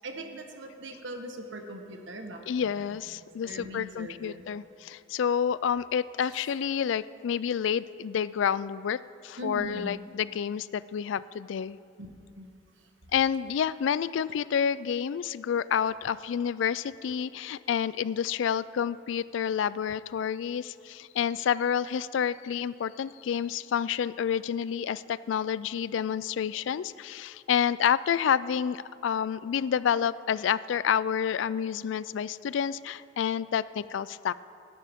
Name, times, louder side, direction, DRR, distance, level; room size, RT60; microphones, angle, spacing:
voice 1, 0.0-3.0 3.4-4.5 6.2-6.4 9.4-10.0 12.0-12.1 12.4-12.5 15.9-16.0, right 1 dB, 70° right, 4 dB, 1.3 m, -41 dB
voice 2, 2.5-9.0 9.2-11.8 13.1-34.3, left 8 dB, 70° left, 18 dB, 0.3 m, -29 dB
20.0 x 11.0 x 3.6 m, 2.5 s
head